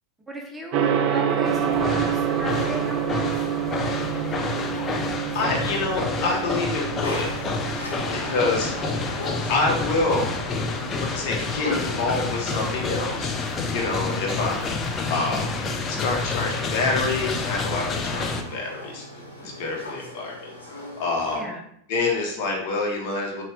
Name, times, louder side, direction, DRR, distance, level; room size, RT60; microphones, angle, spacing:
voice 1, 0.3-3.4 14.0-14.2 18.2-18.5 21.3-21.6, right 1 dB, 10° right, 0 dB, 0.8 m, -36 dB
Gong, 0.7-19.7, right 8 dB, 50° right, 0.4 m, -30 dB
sound 1, 1.4-18.4, left 4 dB, 25° left, 0.5 m, -29 dB
voice 2, 5.3-7.3 8.1-9.2 9.5-10.3 11.0-15.5 15.9-19.0 19.4-20.5 21.0-21.5 21.9-23.4, left 3 dB, 55° left, 0 dB, 1.1 m, -27 dB
sound 2, 7.0-21.4, left 2 dB, 90° left, 1.2 m, -39 dB
4.1 x 2.5 x 3.4 m, 0.69 s
figure-of-eight pair, 90°, 0 cm